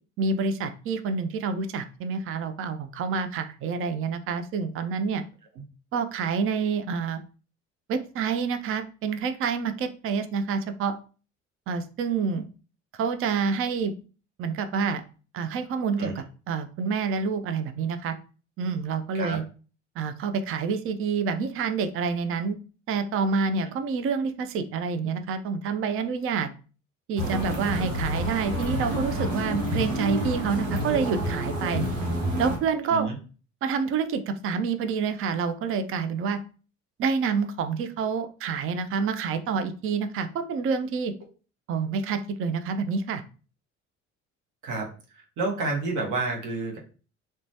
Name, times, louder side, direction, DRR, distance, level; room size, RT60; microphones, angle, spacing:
voice 1, 0.2-5.2 5.9-7.2 7.9-10.9 11.7-12.5 13.0-13.9 14.4-15.0 15.3-18.2 18.6-19.4 20.0-22.6 22.9-26.5 27.1-31.8 32.4-33.1 33.6-36.4 37.0-41.1 41.7-43.2, right 5 dB, 35° right, 9 dB, 0.5 m, -28 dB
sound 1, 27.2-32.6, equal, 85° right, 0.8 m, -28 dB
voice 2, 45.1-46.8, right 3 dB, 55° right, -1 dB, 1.1 m, -29 dB
3.0 x 2.2 x 2.6 m, 0.37 s
hypercardioid pair, 55°, 37 cm